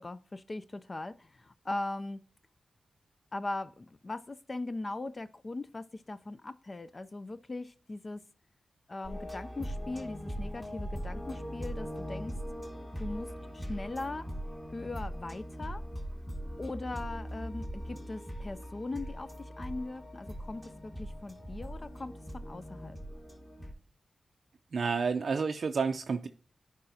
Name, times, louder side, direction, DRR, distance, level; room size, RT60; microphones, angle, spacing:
voice 1, 0.0-2.2 3.3-8.2 8.9-12.3 13.0-14.3 14.7-15.8 16.6-23.0, left 2 dB, 35° left, 0.3 m, -40 dB
sound 1, 9.0-23.7, equal, 15° left, 2.0 m, -40 dB
voice 2, 24.7-26.3, right 5 dB, 65° right, 0.4 m, -30 dB
10.5 x 4.7 x 2.7 m
wide cardioid pair, 90°, 0 cm